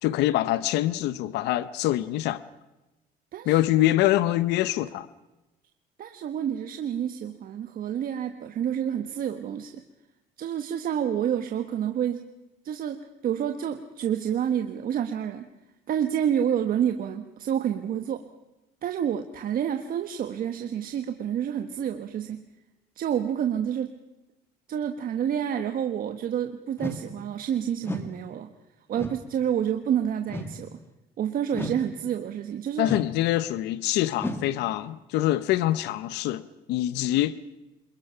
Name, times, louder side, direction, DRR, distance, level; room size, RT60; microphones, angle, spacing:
voice 1, 0.0-2.4 3.5-5.1 32.8-36.4 36.7-37.4, left 14 dB, 85° left, 0.8 m, -24 dB
voice 2, 3.3-3.6 6.0-9.8 10.4-12.2 12.6-15.5 15.9-18.2 18.8-22.5 23.0-23.9 24.7-28.5 28.9-30.8 31.2-32.9, right 9 dB, 60° right, 1.4 m, -28 dB
sound 1, 26.8-27.1 27.8-28.1 28.9-29.3 30.3-30.6 31.5-31.9 32.8-33.2 34.2-34.5, left 1 dB, 15° left, 2.1 m, -34 dB
27.0 x 22.0 x 5.8 m
cardioid pair, 110°, 17 cm